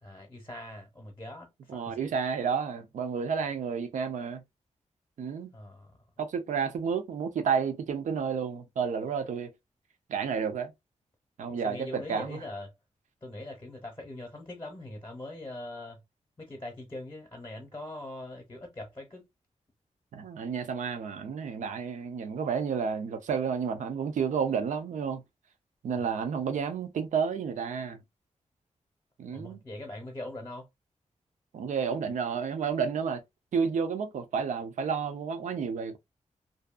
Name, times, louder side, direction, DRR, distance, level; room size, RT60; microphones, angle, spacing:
voice 1, 0.0-2.1 5.5-6.0 11.5-12.7 13.2-16.0 16.4-19.3 25.9-26.3 29.3-30.7, left 1 dB, 20° left, 0.7 m, -42 dB
voice 2, 1.7-4.4 5.2-5.5 6.2-9.5 10.1-10.7 11.4-12.4 20.1-25.2 25.8-28.0 29.2-29.6 31.5-33.2 33.5-36.0, right 6 dB, 80° right, 0.5 m, -31 dB
2.6 x 2.3 x 2.3 m
wide cardioid pair, 120°, 13 cm